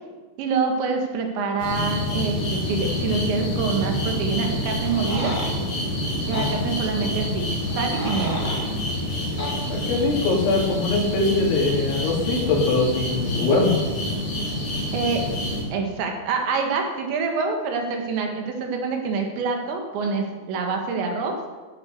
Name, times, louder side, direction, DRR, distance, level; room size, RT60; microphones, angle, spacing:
voice 1, 0.4-5.3 6.3-7.5 7.8-8.5 14.9-15.3 15.7-21.4, right 4 dB, 75° right, 3 dB, 3.8 m, -26 dB
sound 1, 1.6-15.6, left 1 dB, 40° left, 6.2 m, -27 dB
sound 2, 4.8-5.5 6.3-6.5 7.7-8.6 9.4-9.6, left 1 dB, 5° left, 2.4 m, -32 dB
voice 2, 9.7-13.8, left 3 dB, 80° left, -3 dB, 5.3 m, -22 dB
14.5 x 8.4 x 6.6 m, 1.3 s
omnidirectional pair, 5.3 m